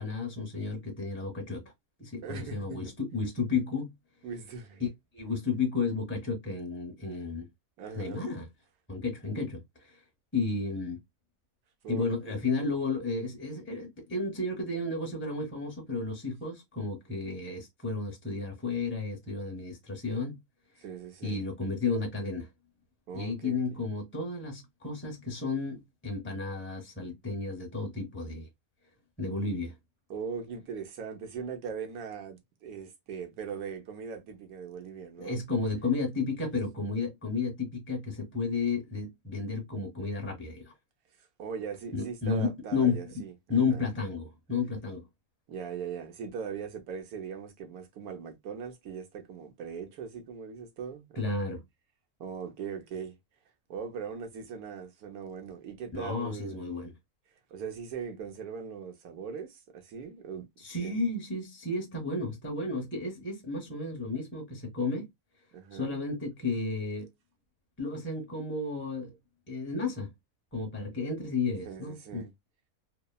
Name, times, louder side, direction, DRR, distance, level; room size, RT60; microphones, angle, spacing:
voice 1, 0.0-1.6 2.0-3.9 4.8-4.9 5.1-7.5 8.0-8.5 8.9-9.6 9.9-10.0 10.3-11.0 11.9-20.4 21.2-22.5 23.1-28.5 29.2-29.7 35.2-40.7 41.9-43.2 43.5-45.0 51.2-51.6 55.9-56.9 60.6-65.1 65.7-67.1 67.8-69.1 69.5-70.1 70.5-72.2, left 4 dB, 10° left, 0.7 m, -32 dB
voice 2, 2.2-2.9 4.2-4.8 7.8-8.3 11.8-12.4 20.8-21.5 23.1-23.8 30.1-35.4 41.2-43.9 45.5-51.4 52.2-53.2 53.7-56.7 57.5-60.4 60.8-61.1 65.5-66.0 71.6-72.3, right 6 dB, 85° right, 1.2 m, -40 dB
3.1 x 2.1 x 2.2 m
omnidirectional pair, 1.5 m